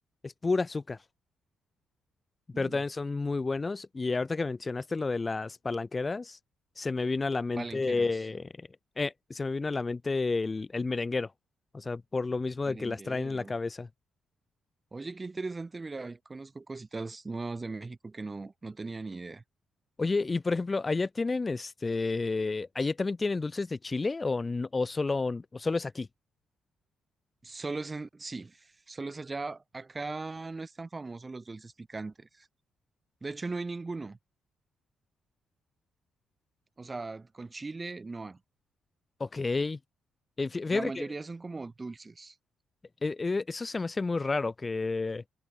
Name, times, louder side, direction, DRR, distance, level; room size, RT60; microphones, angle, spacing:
voice 1, 0.2-1.0 2.6-6.4 6.8-8.5 9.0-11.3 11.7-13.9 20.0-26.1 39.2-39.8 40.4-41.1 43.0-45.2, left 3 dB, 25° left, 0.5 m, -30 dB
voice 2, 7.5-8.2 12.6-13.5 14.9-19.4 27.4-32.5 33.2-34.2 36.8-38.4 40.7-42.3, right 3 dB, 25° right, 1.3 m, -39 dB
cardioid pair, 90°, 0 cm